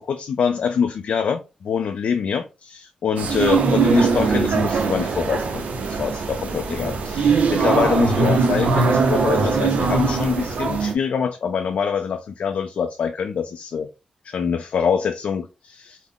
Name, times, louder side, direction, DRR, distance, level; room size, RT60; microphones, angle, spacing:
voice 1, 0.0-13.9 14.2-16.0, left 6 dB, 75° left, 0.3 m, -25 dB
sound 1, 3.2-10.9, right 4 dB, 85° right, 0.5 m, -21 dB
3.5 x 2.0 x 3.6 m
wide cardioid pair, 120°, 2 cm